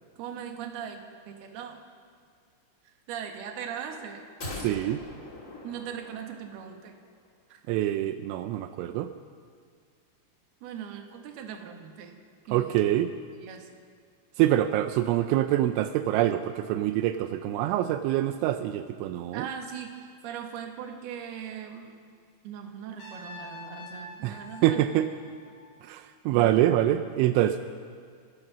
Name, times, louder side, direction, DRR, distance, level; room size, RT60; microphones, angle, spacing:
voice 1, 0.2-1.8 3.1-4.2 5.6-7.0 7.5-7.6 10.6-12.2 12.5-12.7 13.4-13.7 19.3-22.0 22.4-24.8 26.3-26.5, right 8 dB, 65° right, 3 dB, 3.3 m, -39 dB
sound 1, 4.4-6.8 7.0-7.1, left 2 dB, 60° left, 0.8 m, -41 dB
voice 2, 4.6-5.0 7.7-9.1 12.5-13.1 14.4-19.5 24.2-25.1 25.8-27.6, right 13 dB, 85° right, 8 dB, 3.1 m, -25 dB
Trumpet, 23.0-26.0, left 1 dB, 75° left, 10.5 m, -46 dB
26.5 x 16.5 x 6.1 m, 2.1 s
omnidirectional pair, 5.4 m